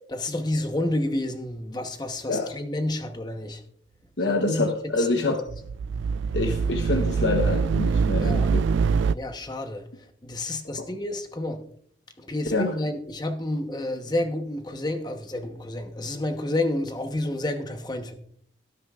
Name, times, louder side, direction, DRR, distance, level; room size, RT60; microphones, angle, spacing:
voice 1, 0.1-3.6 4.3-4.7 5.0-5.3 8.2-8.5 9.1-9.9 10.2-11.6 12.2-18.1, left 1 dB, 20° left, 1.0 m, -30 dB
voice 2, 4.2-5.4 6.3-8.6 9.0-9.1 12.5-12.7, left 2 dB, 75° left, 1.0 m, -26 dB
sound 1, 5.5-9.1, right 5 dB, 90° right, 0.3 m, -24 dB
18.0 x 9.5 x 2.4 m
head